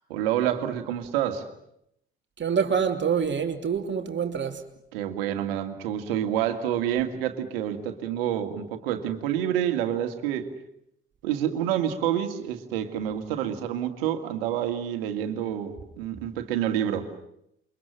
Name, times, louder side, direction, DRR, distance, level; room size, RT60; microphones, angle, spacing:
voice 1, 0.1-1.5 4.9-10.5 11.2-17.1, right 10 dB, 75° right, 2.4 m, -28 dB
voice 2, 2.4-4.6, right 7 dB, 40° right, 3.1 m, -26 dB
29.0 x 24.5 x 7.6 m
hypercardioid pair, 50°, 29 cm